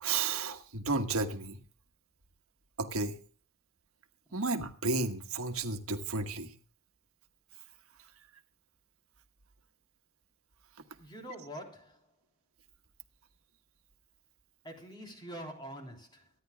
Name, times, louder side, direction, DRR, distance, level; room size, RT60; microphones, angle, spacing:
voice 1, 0.0-1.6 2.8-3.2 4.3-6.5, right 3 dB, 85° right, 1.4 m, -32 dB
voice 2, 11.0-12.1 14.6-16.3, equal, 20° left, 3.4 m, -45 dB
25.0 x 10.0 x 2.2 m
head